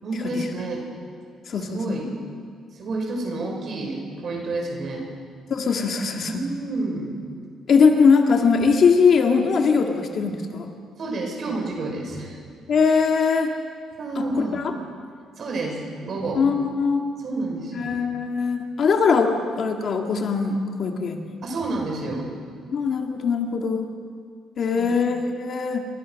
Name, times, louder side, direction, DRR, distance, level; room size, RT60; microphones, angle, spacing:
voice 1, 0.0-0.8 1.6-2.2 2.7-5.1 6.2-7.1 11.0-12.4 14.0-14.6 15.4-16.4 17.2-17.9 21.4-22.3 24.7-25.0, right 2 dB, 40° right, 2 dB, 5.5 m, -29 dB
voice 2, 1.5-2.0 5.5-6.3 7.7-10.7 12.7-13.5 14.2-14.3 14.5-14.7 16.4-17.0 17.7-21.4 22.7-23.9 24.6-25.9, left 5 dB, 40° left, 3 dB, 1.9 m, -21 dB
29.0 x 25.0 x 6.5 m, 2.1 s
cardioid pair, 170°, 0 cm